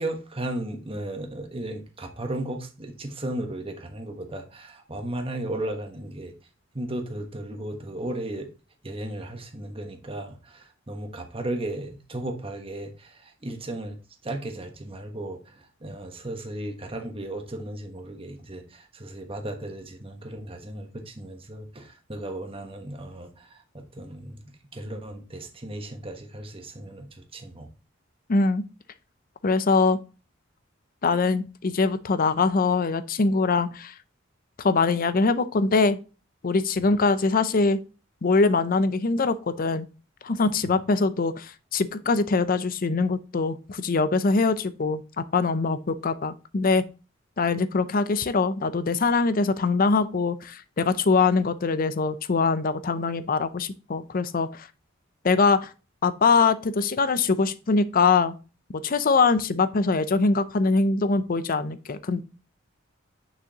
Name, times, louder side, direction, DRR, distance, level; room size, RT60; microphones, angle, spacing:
voice 1, 0.0-6.3 6.7-8.5 8.8-14.0 14.2-24.4 24.7-27.7, right 1 dB, 30° right, 1.3 m, -35 dB
voice 2, 28.3-28.6 29.4-30.0 31.0-33.9 34.6-36.0 36.4-37.8 38.2-39.9 40.2-46.8 47.4-54.7 55.2-55.7 56.0-58.3 58.8-62.2, left 4 dB, 45° left, 0.6 m, -23 dB
6.3 x 6.2 x 2.9 m
head